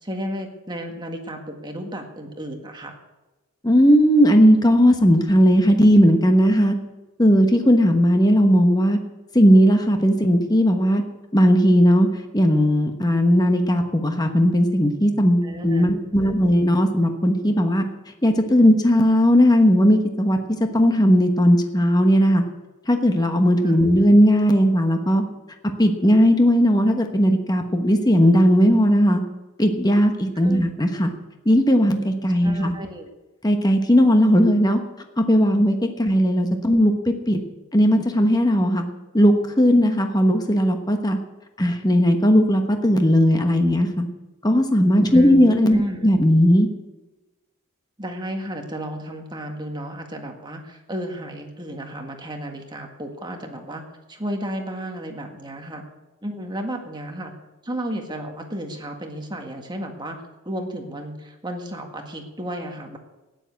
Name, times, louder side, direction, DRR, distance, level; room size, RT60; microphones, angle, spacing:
voice 1, 0.0-3.0 15.4-15.9 23.6-23.8 30.4-30.6 30.9-31.1 32.4-33.1 36.6-36.7 45.1-46.1 48.0-53.8 54.1-55.8 56.2-57.3 57.6-63.0, equal, 20° right, 3 dB, 1.7 m, -33 dB
voice 2, 3.6-6.7 7.2-9.0 9.3-11.0 11.3-12.1 12.3-17.8 18.2-20.4 20.7-22.4 22.9-25.2 25.8-29.2 29.6-31.1 31.4-32.7 33.4-34.8 35.2-36.9 37.3-37.4 37.7-38.8 39.1-41.2 41.6-44.1 44.4-46.7, equal, 20° left, 5 dB, 1.1 m, -17 dB
12.5 x 10.0 x 8.2 m, 1.1 s
head